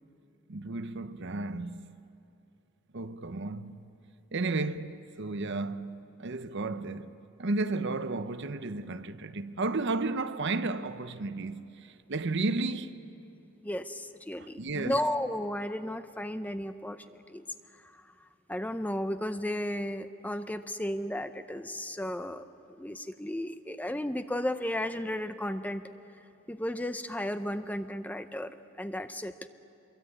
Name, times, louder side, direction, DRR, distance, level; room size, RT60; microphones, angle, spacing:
voice 1, 0.5-1.9 2.9-4.0 4.3-7.1 7.4-12.9 14.4-15.1, right 3 dB, 55° right, 0.8 m, -33 dB
voice 2, 13.6-17.5 17.9-18.0 18.5-22.5 22.8-25.8 26.5-29.3, left 1 dB, 5° left, 0.6 m, -34 dB
24.0 x 23.0 x 8.7 m
head